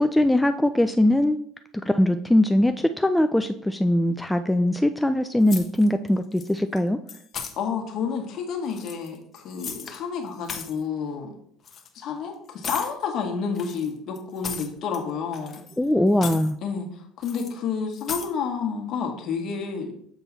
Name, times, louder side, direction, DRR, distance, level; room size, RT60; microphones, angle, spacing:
voice 1, 0.0-1.4 1.8-7.0 15.8-16.6, left 1 dB, 5° left, 8 dB, 0.3 m, -21 dB
sound 1, 5.5-6.1 6.4-6.8 7.1-7.5 8.6-10.0 10.3-10.8 11.6-11.9 12.6-12.9 13.5-15.0 15.3-15.8 16.1-16.5 17.2-17.5 17.9-18.3, left 6 dB, 35° left, 1.0 m, -36 dB
voice 2, 7.6-11.4 11.9-15.6 16.6-19.9, left 6 dB, 55° left, 3 dB, 1.5 m, -30 dB
7.2 x 3.8 x 4.0 m, 0.65 s
supercardioid pair, 105°, 0 cm